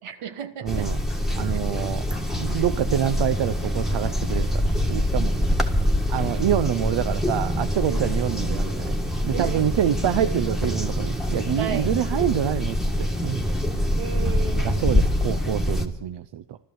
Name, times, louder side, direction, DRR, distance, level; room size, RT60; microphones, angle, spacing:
voice 1, 0.0-0.9 1.5-1.6 7.9-8.0 9.3-9.6 11.6-11.9 14.0-14.8, right 7 dB, 90° right, 8 dB, 1.5 m, -33 dB
voice 2, 0.6-1.0 1.3-2.1 2.4-5.5 6.1-9.0 9.2-13.5 14.6-16.6, right 10 dB, 60° right, 10 dB, 0.7 m, -26 dB
sound 1, 0.7-15.9, left 1 dB, ahead, 1.5 m, -25 dB
13.5 x 13.0 x 7.8 m, 0.94 s
cardioid pair, 115°, 50 cm